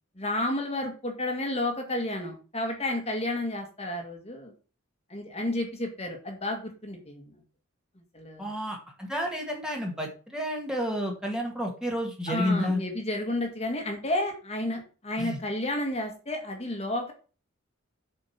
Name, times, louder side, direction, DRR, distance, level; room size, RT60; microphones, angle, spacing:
voice 1, 0.2-4.5 5.1-7.4 8.1-8.5 12.3-17.1, left 1 dB, 30° left, 2 dB, 1.9 m, -31 dB
voice 2, 8.4-12.8 15.2-15.4, equal, 5° right, 0 dB, 1.9 m, -30 dB
7.8 x 5.2 x 5.8 m, 0.36 s
head